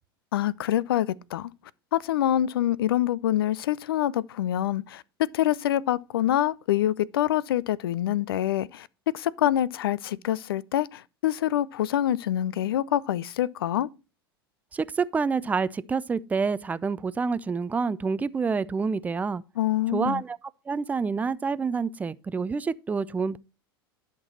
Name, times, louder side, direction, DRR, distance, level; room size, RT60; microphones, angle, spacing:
voice 1, 0.3-1.5 1.9-8.9 9.1-13.9 19.6-20.2, left 12 dB, 70° left, 0.5 m, -26 dB
voice 2, 14.7-19.4 19.9-20.4 20.7-23.4, right 5 dB, 10° right, 0.4 m, -27 dB
11.0 x 6.0 x 4.2 m
figure-of-eight pair, 85°, 13 cm